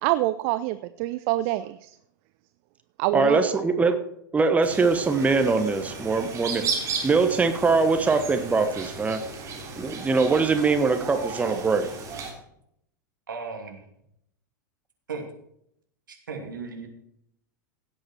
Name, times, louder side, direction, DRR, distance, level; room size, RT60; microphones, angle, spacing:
voice 1, 0.0-2.0 3.0-3.4, right 17 dB, 45° right, 13 dB, 0.5 m, -26 dB
voice 2, 3.1-4.0 4.3-6.6 7.0-9.2 9.8-11.9, right 4 dB, 15° right, 8 dB, 1.2 m, -22 dB
sound 1, 4.6-12.3, right 4 dB, 30° right, 3.6 m, -35 dB
voice 3, 13.3-13.8 15.1-15.2 16.1-16.9, right 4 dB, 75° right, 3 dB, 2.7 m, -36 dB
16.5 x 7.9 x 4.5 m, 0.74 s
figure-of-eight pair, 90°, 11 cm